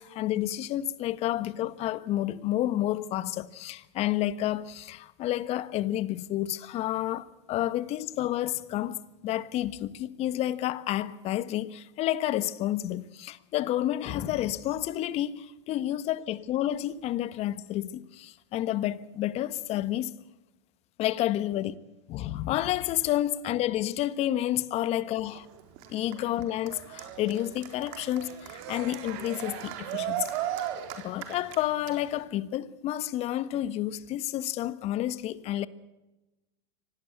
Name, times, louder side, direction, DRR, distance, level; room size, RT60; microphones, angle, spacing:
voice 1, 0.0-20.1 21.0-21.7 22.1-25.5 25.9-30.3 31.0-35.7, left 13 dB, 40° left, 1.4 m, -30 dB
Cheering, 25.2-32.2, right 11 dB, 55° right, 4.1 m, -37 dB
25.0 x 18.0 x 8.1 m
hypercardioid pair, 105°, 16 cm